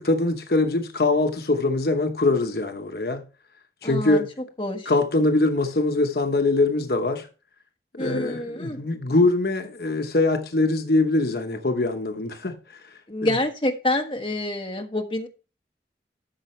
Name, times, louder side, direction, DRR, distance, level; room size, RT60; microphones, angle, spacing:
voice 1, 0.0-3.2 3.8-4.3 4.9-7.3 7.9-12.6 13.2-13.4, left 2 dB, 60° left, 1.0 m, -23 dB
voice 2, 3.8-4.2 4.6-4.9 8.0-8.8 13.1-15.3, left 1 dB, 30° left, 1.4 m, -27 dB
13.0 x 6.5 x 3.2 m
head